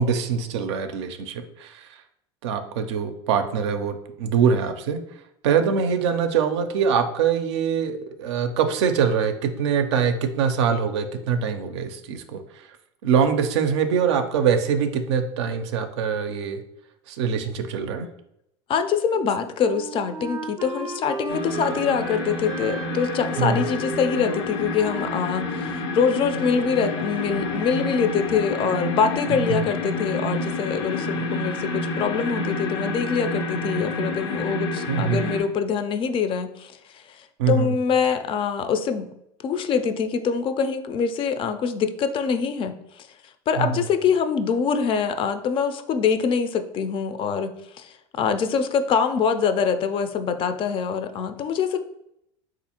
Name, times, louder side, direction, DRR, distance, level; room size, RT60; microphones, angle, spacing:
voice 1, 0.0-1.9 2.4-5.0 5.4-12.4 13.0-16.6 17.1-18.1 23.4-23.6 29.5-29.6 34.9-35.2 37.4-37.7 43.6-43.8, right 6 dB, 80° right, 8 dB, 0.4 m, -23 dB
voice 2, 18.7-39.1 39.4-43.1 43.5-51.8, left 6 dB, 40° left, 9 dB, 0.3 m, -24 dB
Wind instrument woodwind instrument, 19.1-26.7, right 2 dB, 25° right, 0.5 m, -36 dB
sound 1, 21.3-35.4, left 2 dB, 85° left, 0.5 m, -29 dB
3.4 x 2.5 x 2.8 m, 0.79 s
supercardioid pair, 100°, 14 cm